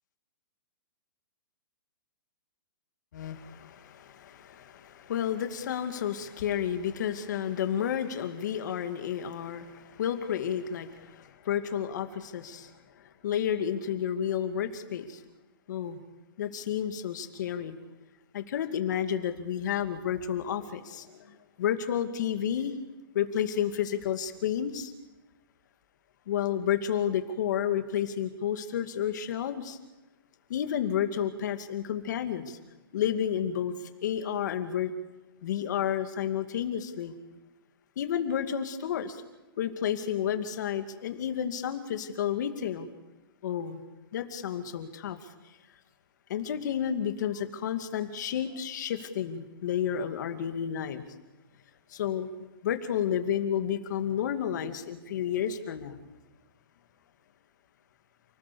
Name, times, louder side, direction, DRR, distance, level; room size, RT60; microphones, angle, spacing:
voice 1, 3.1-15.2 15.7-16.0 16.4-17.8 18.3-22.7 23.1-24.9 26.3-29.8 30.5-32.6 32.9-34.9 35.4-37.1 38.0-39.2 39.6-42.9 43.4-43.8 44.1-45.3 46.3-51.1 51.9-56.0, left 9 dB, 50° left, 8 dB, 2.4 m, -31 dB
30.0 x 19.0 x 7.1 m, 1.1 s
hypercardioid pair, 165°, 12 cm